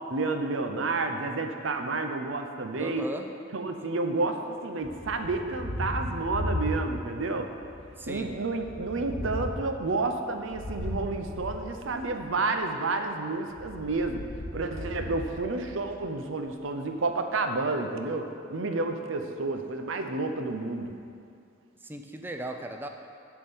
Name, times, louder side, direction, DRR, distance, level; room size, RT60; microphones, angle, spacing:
voice 1, 0.1-3.0 3.5-7.5 8.1-14.2 14.5-20.9, right 3 dB, 80° right, 6 dB, 0.7 m, -30 dB
voice 2, 2.8-3.3 8.0-8.3 21.8-22.9, right 1 dB, 10° right, 4 dB, 0.4 m, -37 dB
Thunder, 4.8-7.2 7.6-12.4 13.4-16.1, left 1 dB, 55° left, 1.0 m, -37 dB
10.5 x 3.8 x 6.9 m, 2.4 s
head